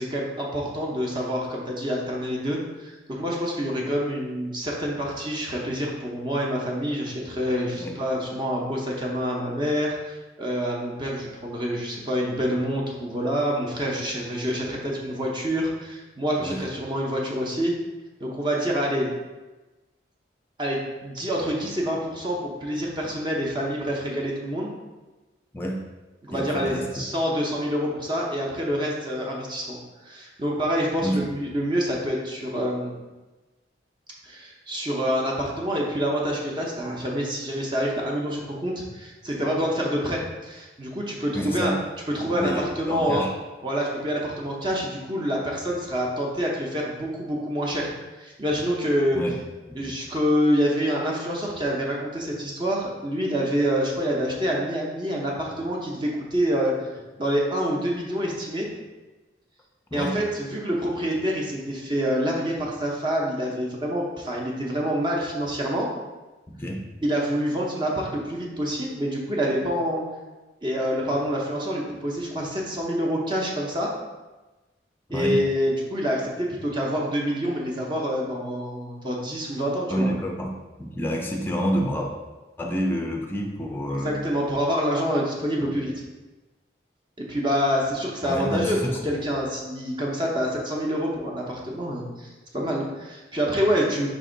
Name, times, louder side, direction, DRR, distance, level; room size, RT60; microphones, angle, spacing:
voice 1, 0.0-17.7 18.2-19.1 20.6-24.7 26.2-29.8 30.0-33.0 34.2-41.8 42.1-43.2 43.6-47.9 48.2-49.2 49.7-56.7 57.2-58.7 59.9-65.9 67.0-70.0 70.6-73.9 75.1-80.1 83.9-85.9 87.2-88.8 89.0-94.1, equal, 25° right, -2 dB, 0.7 m, -27 dB
voice 2, 25.5-25.8 26.3-26.9 31.0-31.3 41.3-41.8 42.3-43.3 49.1-49.4 49.7-49.9 59.9-60.2 66.5-66.8 75.1-75.4 79.9-82.1 82.6-84.3 85.6-85.7 88.2-89.2, equal, 10° left, 1 dB, 0.4 m, -28 dB
5.1 x 2.6 x 3.8 m, 1.1 s
head